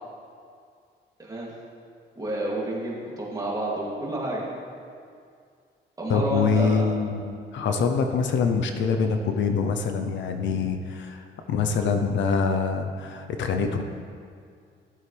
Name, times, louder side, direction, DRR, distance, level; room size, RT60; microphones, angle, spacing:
voice 1, 2.1-4.4 6.0-6.8, right 1 dB, 20° right, -5 dB, 2.9 m, -29 dB
voice 2, 6.1-13.8, left 5 dB, 70° left, 5 dB, 0.8 m, -25 dB
14.5 x 7.8 x 3.5 m, 2.2 s
cardioid pair, 90°, 20 cm